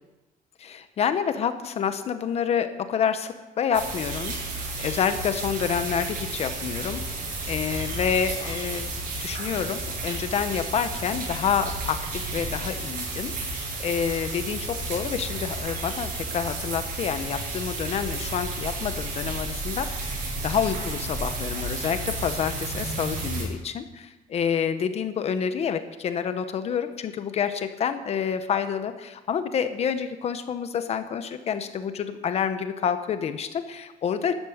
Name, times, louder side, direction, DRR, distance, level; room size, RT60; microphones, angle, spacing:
voice 1, 0.6-4.3 4.8-7.0 7.5-8.9 9.2-13.3 13.8-20.2 20.4-34.3, left 7 dB, 40° left, 10 dB, 1.0 m, -28 dB
sound 1, 3.7-23.4, right 2 dB, 60° right, 7.2 m, -32 dB
13.0 x 13.0 x 8.0 m, 1.1 s
cardioid pair, 175°, 16 cm